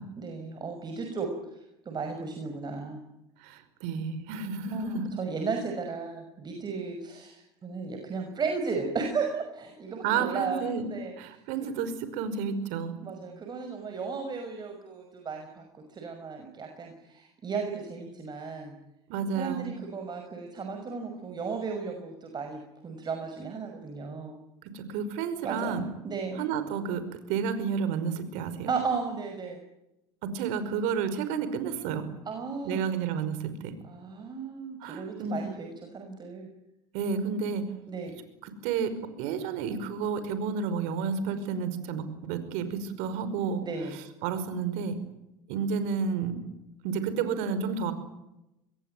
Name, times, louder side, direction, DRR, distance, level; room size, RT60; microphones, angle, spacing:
voice 1, 0.2-3.0 4.7-11.7 13.0-18.8 19.3-24.4 25.4-26.5 28.7-29.6 32.3-32.8 33.8-36.5 37.9-38.1 43.6-44.0, right 5 dB, 35° right, 4 dB, 6.0 m, -35 dB
voice 2, 3.4-5.1 10.0-10.9 11.2-13.0 19.1-19.7 24.7-25.9 26.4-27.0 27.3-28.7 30.2-32.0 32.6-33.7 34.8-35.4 36.9-37.7 38.6-38.9 39.2-43.6 44.2-45.0 45.5-46.4 46.8-47.9, right 6 dB, 70° right, 11 dB, 5.4 m, -31 dB
26.0 x 21.5 x 9.2 m, 0.91 s
hypercardioid pair, 90°, 13 cm